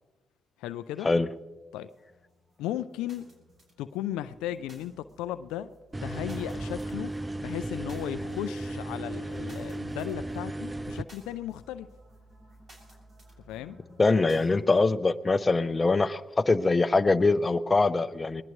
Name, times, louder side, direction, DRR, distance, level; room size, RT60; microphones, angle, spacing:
voice 1, 0.6-1.1 1.7-1.9 2.6-3.3 3.8-5.7 6.0-7.1 7.4-11.9 13.5-13.8, left 12 dB, 85° left, 11 dB, 0.5 m, -36 dB
sound 1, 1.7-14.8, equal, 50° right, 7.1 m, -55 dB
sound 2, 5.9-11.0, right 1 dB, 20° right, 0.5 m, -35 dB
voice 2, 14.0-18.4, left 3 dB, 30° left, 11 dB, 0.8 m, -23 dB
21.0 x 20.0 x 3.2 m, 1.2 s
supercardioid pair, 50°, 0 cm